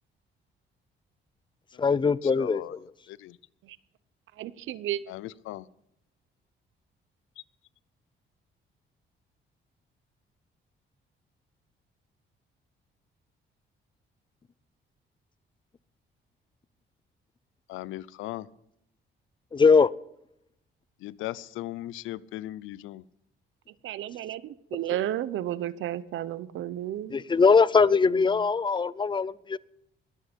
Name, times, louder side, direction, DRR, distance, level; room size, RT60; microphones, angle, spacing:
voice 1, 1.8-2.9 19.5-19.9 27.1-29.6, left 5 dB, 25° left, 0.5 m, -21 dB
voice 2, 2.4-2.7 3.1-3.4 5.1-5.7 17.7-18.5 21.0-23.0, left 15 dB, 90° left, 0.5 m, -37 dB
voice 3, 4.4-5.0 23.8-27.2, right 12 dB, 80° right, 0.8 m, -32 dB
21.5 x 8.5 x 5.2 m
cardioid pair, 90°, 20 cm